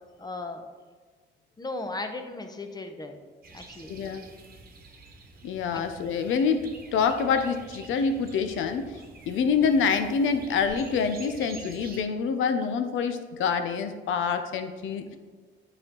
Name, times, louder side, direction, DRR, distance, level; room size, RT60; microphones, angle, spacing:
voice 1, 0.2-0.6 1.6-3.2 3.5-4.0 5.7-5.8, left 2 dB, 20° left, 6 dB, 0.8 m, -36 dB
sound 1, 3.4-12.0, right 3 dB, 45° right, 1.2 m, -47 dB
voice 2, 3.9-4.2 5.4-15.2, left 5 dB, 80° left, 8 dB, 0.7 m, -26 dB
8.8 x 4.4 x 3.8 m, 1.4 s
cardioid pair, 90°, 20 cm